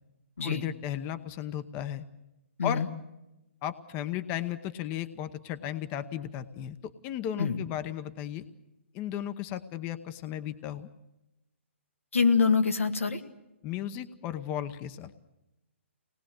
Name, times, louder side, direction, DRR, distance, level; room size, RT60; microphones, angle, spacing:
voice 1, 0.4-2.0 2.6-2.8 3.6-8.4 8.9-10.9 13.6-15.1, left 11 dB, 25° left, 11 dB, 0.9 m, -35 dB
voice 2, 12.1-13.2, left 5 dB, 85° left, 5 dB, 2.0 m, -25 dB
25.0 x 19.5 x 7.8 m, 0.94 s
hypercardioid pair, 140°, 7 cm